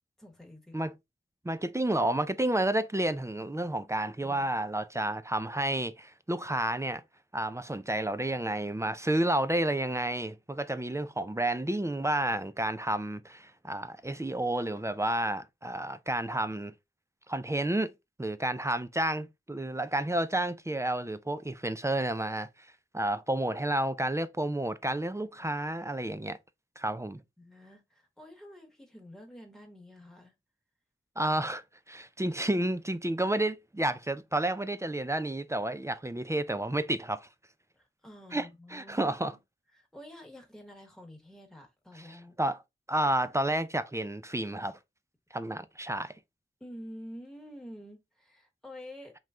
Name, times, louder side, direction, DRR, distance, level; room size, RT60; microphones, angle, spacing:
voice 1, 0.2-0.8 27.4-30.3 37.7-39.4 39.7-42.4 46.6-49.2, equal, ahead, 1.0 m, -48 dB
voice 2, 1.4-7.0 7.3-16.7 17.3-17.9 18.2-22.5 22.9-26.4 26.8-27.2 31.2-37.3 38.3-39.3 42.4-42.6 42.9-44.8 45.3-46.1, right 1 dB, 15° right, 0.4 m, -30 dB
3.1 x 2.2 x 3.6 m
cardioid pair, 40°, 21 cm